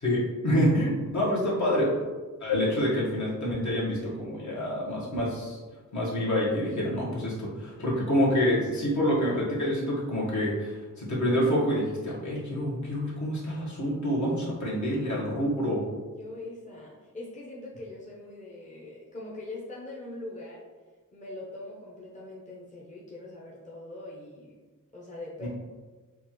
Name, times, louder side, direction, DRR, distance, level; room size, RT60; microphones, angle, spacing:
voice 1, 0.0-1.9 2.4-5.6 5.9-15.9 25.4-25.5, equal, 60° left, -6 dB, 1.5 m, -27 dB
voice 2, 16.2-20.6 21.1-24.6 24.9-25.5, left 2 dB, 20° left, -5 dB, 0.8 m, -42 dB
6.5 x 2.5 x 3.1 m, 1.3 s
wide cardioid pair, 140°, 33 cm